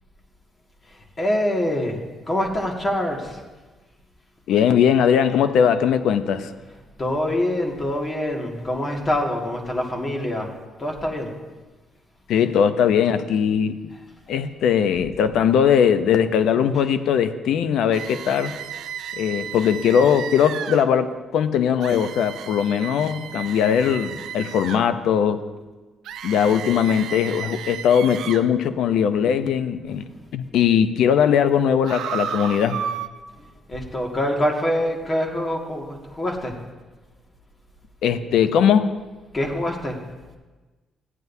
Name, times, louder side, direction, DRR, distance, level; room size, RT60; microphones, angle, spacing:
voice 1, 0.9-3.4 7.0-10.5 10.8-11.3 14.3-14.4 33.4-36.6 39.3-40.0, left 1 dB, 30° left, 0 dB, 1.9 m, -25 dB
voice 2, 4.5-6.5 12.3-13.8 14.3-18.6 19.2-25.4 26.2-30.0 30.3-32.8 38.0-38.9, left 8 dB, 80° left, 11 dB, 0.6 m, -20 dB
sound 1, 17.9-20.9 21.8-24.8 26.0-28.4 31.8-33.1, right 9 dB, 80° right, 0.5 m, -33 dB
15.5 x 9.2 x 2.7 m, 1.3 s
cardioid pair, 90°, 0 cm